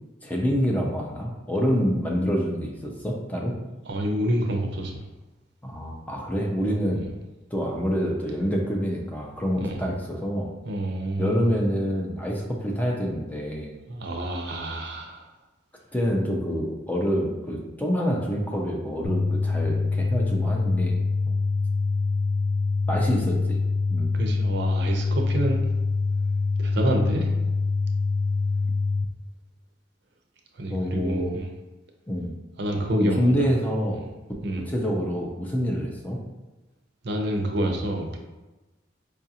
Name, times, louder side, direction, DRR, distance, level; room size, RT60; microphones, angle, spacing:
voice 1, 0.2-3.6 5.6-7.0 7.5-10.5 11.2-13.7 15.9-21.0 21.3-21.4 22.9-23.6 23.9-24.1 30.7-31.3 32.1-32.3 32.9-34.1 34.6-36.2, equal, 10° left, -1 dB, 0.5 m, -26 dB
voice 2, 3.9-5.0 6.9-7.0 9.6-9.9 10.6-11.5 13.9-15.2 24.1-25.6 26.6-27.3 30.6-31.5 32.6-33.5 34.4-34.7 37.0-38.2, right 1 dB, 65° right, 2 dB, 0.6 m, -28 dB
sound 1, 19.0-29.1, left 3 dB, 65° left, 0.4 m, -25 dB
4.7 x 2.4 x 2.8 m, 1.1 s
head